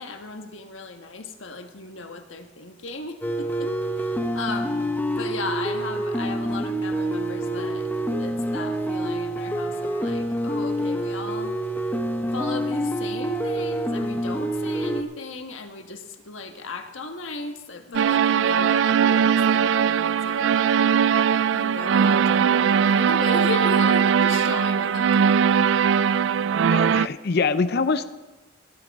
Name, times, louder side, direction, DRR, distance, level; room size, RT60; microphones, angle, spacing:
voice 1, 0.0-7.9 8.2-11.5 12.3-20.5 21.2-25.4, left 3 dB, 80° left, 5 dB, 1.4 m, -36 dB
sound 1, 3.2-15.0, right 1 dB, 10° left, 0.8 m, -27 dB
sound 2, 17.9-27.1, right 7 dB, 65° right, 0.3 m, -20 dB
voice 2, 26.7-28.0, left 4 dB, 55° left, 12 dB, 0.6 m, -24 dB
16.5 x 13.0 x 3.6 m, 1.1 s
head